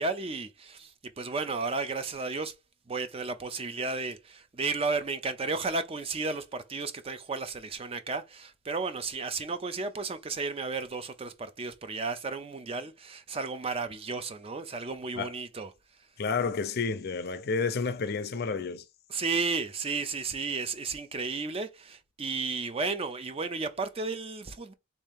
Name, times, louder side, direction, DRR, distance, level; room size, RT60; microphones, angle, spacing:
voice 1, 0.0-2.5 2.9-15.7 19.1-24.7, right 4 dB, 30° right, 0.4 m, -33 dB
voice 2, 16.2-18.8, left 4 dB, 50° left, 0.4 m, -30 dB
3.5 x 2.8 x 3.4 m
head